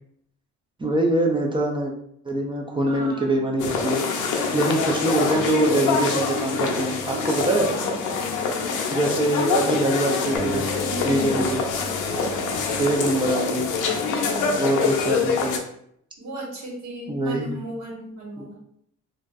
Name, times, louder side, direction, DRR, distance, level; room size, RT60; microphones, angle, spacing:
voice 1, 0.8-1.9 2.2-4.0 4.5-7.7 8.9-10.7 11.0-11.6 12.8-13.7 14.6-15.6 17.1-17.6 18.4-18.5, right 1 dB, 15° right, 1 dB, 0.4 m, -23 dB
voice 2, 2.8-3.5 4.1-5.0 7.1-8.1 8.4-8.8 10.8-11.6 12.0-12.7 13.8-14.6 16.2-18.6, right 1 dB, 65° right, -3 dB, 1.1 m, -36 dB
sound 1, 3.6-15.6, left 5 dB, 85° left, 0.5 m, -25 dB
sound 2, 10.4-13.6, equal, 40° left, 0.8 m, -36 dB
2.4 x 2.2 x 2.4 m, 0.70 s
cardioid pair, 90°, 30 cm